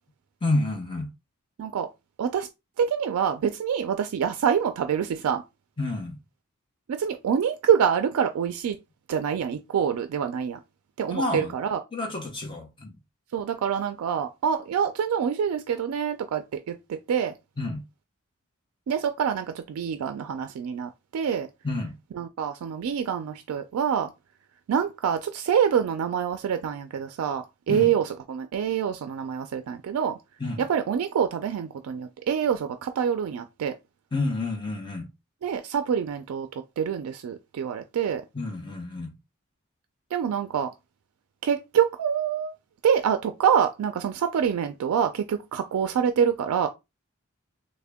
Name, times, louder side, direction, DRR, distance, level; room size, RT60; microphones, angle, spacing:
voice 1, 0.4-1.1 5.8-6.2 11.1-11.5 11.9-12.9 17.6-17.8 21.6-21.9 27.7-27.9 30.4-30.6 34.1-35.1 38.3-39.1, left 2 dB, 20° left, 0.7 m, -29 dB
voice 2, 2.8-5.4 6.9-8.8 9.1-10.6 11.0-11.8 13.3-17.3 18.9-21.5 22.1-24.1 24.7-30.2 30.6-33.7 35.4-36.5 36.8-38.2 40.1-40.7 41.4-42.5 42.8-46.7, right 8 dB, 80° right, 0.3 m, -26 dB
3.5 x 2.1 x 3.4 m
head